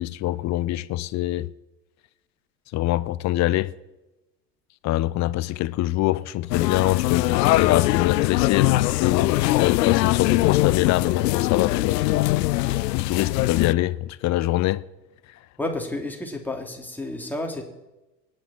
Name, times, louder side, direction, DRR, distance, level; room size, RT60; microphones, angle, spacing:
voice 1, 0.0-1.5 2.7-3.7 4.8-12.5 12.9-14.8, left 16 dB, 35° left, 0.7 m, -24 dB
sound 1, 6.5-13.7, left 17 dB, 75° left, 0.6 m, -22 dB
voice 2, 15.6-17.6, left 2 dB, 5° left, 3.2 m, -31 dB
25.5 x 10.5 x 4.4 m
hypercardioid pair, 90°, 50 cm